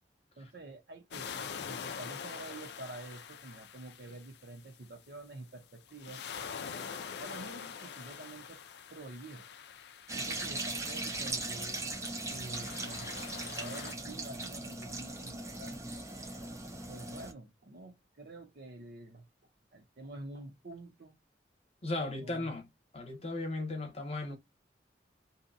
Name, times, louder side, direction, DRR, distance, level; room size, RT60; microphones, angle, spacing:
voice 1, 0.4-6.2 7.2-8.6 8.9-9.5 10.1-11.8 12.3-13.3 13.5-15.8 16.9-19.3 19.7-21.1 22.2-22.5, right 2 dB, 60° right, 0.7 m, -48 dB
sound 1, 1.1-4.9 5.9-10.9 11.8-13.9, left 7 dB, 65° left, 0.4 m, -44 dB
sound 2, 10.1-17.3, right 2 dB, 15° right, 0.5 m, -39 dB
voice 2, 21.8-22.7 22.9-24.3, left 2 dB, 35° left, 0.9 m, -36 dB
2.7 x 2.2 x 2.6 m
head